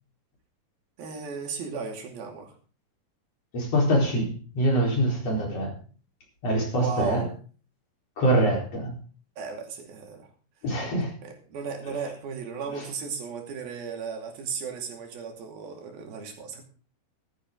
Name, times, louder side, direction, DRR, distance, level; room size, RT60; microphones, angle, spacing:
voice 1, 1.0-2.5 6.8-7.3 9.4-10.3 11.2-16.6, right 5 dB, 85° right, 3 dB, 4.4 m, -35 dB
voice 2, 3.5-5.7 6.4-7.3 8.2-9.0 10.6-11.1 12.8-12.9, right 1 dB, 45° left, 0 dB, 5.0 m, -24 dB
15.5 x 13.5 x 3.8 m, 0.38 s
omnidirectional pair, 4.2 m